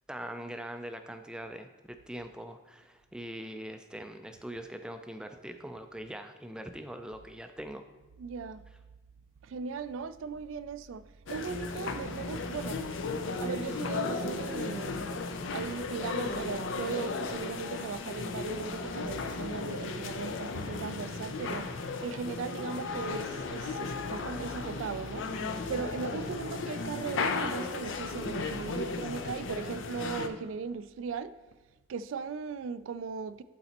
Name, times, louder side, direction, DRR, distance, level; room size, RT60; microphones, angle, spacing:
voice 1, 0.1-7.8, right 1 dB, 5° right, 0.3 m, -42 dB
voice 2, 8.2-8.6 9.4-11.0 11.3-12.8 13.4-15.1 15.5-21.7 22.0-25.3 25.7-31.3 31.9-33.4, right 5 dB, 85° right, 0.3 m, -38 dB
sound 1, 11.3-30.3, left 4 dB, 80° left, 0.5 m, -35 dB
11.5 x 4.0 x 2.9 m
head